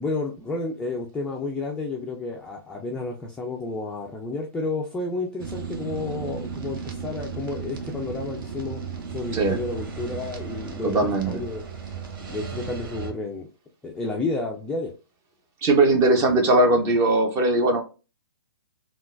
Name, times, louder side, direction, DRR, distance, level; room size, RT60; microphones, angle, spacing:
voice 1, 0.0-8.8 9.1-10.9 11.3-11.6 12.3-13.5 13.8-14.9, left 3 dB, 5° left, 0.3 m, -31 dB
sound 1, 5.4-13.1, right 6 dB, 55° right, 0.9 m, -35 dB
voice 2, 10.8-11.4 15.6-17.8, right 2 dB, 25° right, 0.7 m, -20 dB
3.7 x 2.2 x 2.4 m
hypercardioid pair, 140°, 14 cm